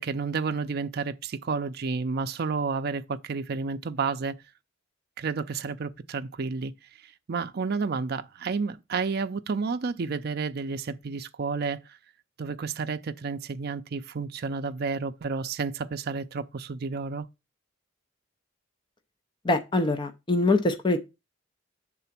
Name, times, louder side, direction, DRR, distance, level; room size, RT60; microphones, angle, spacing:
voice 1, 0.0-4.4 5.2-6.7 7.0-11.8 12.4-17.3, right 4 dB, 55° right, 0.5 m, -31 dB
voice 2, 19.4-21.0, left 2 dB, 25° left, 0.6 m, -24 dB
6.9 x 3.8 x 5.8 m
head